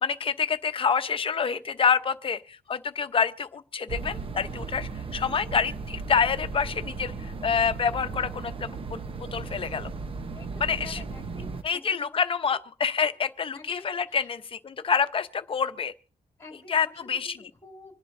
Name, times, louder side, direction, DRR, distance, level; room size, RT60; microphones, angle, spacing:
voice 1, 0.0-9.9 10.6-11.0 11.6-15.9 16.7-17.4, left 6 dB, 40° left, 0.8 m, -27 dB
sound 1, 3.9-11.6, right 4 dB, 40° right, 0.9 m, -36 dB
voice 2, 10.3-12.2 12.5-12.6 13.5-14.3 16.4-18.0, left 3 dB, 20° left, 2.6 m, -49 dB
26.0 x 10.5 x 2.7 m
cardioid pair, 125°, 14 cm